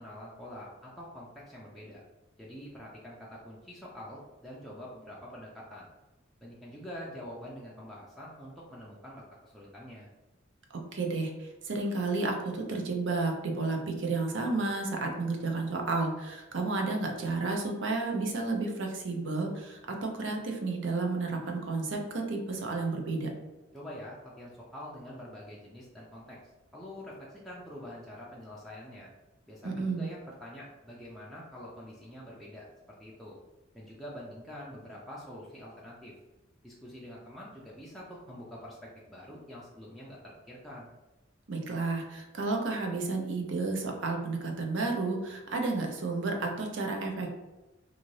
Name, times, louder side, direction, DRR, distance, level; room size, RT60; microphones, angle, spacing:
voice 1, 0.0-2.0 2.4-5.9 6.4-10.1 23.7-26.4 26.7-29.1 29.4-33.4 33.7-36.1 36.6-40.9, equal, ahead, -6 dB, 0.4 m, -46 dB
voice 2, 10.7-23.3 29.6-30.1 41.5-47.4, right 3 dB, 65° right, 2 dB, 0.6 m, -32 dB
2.6 x 2.5 x 3.1 m, 1.1 s
head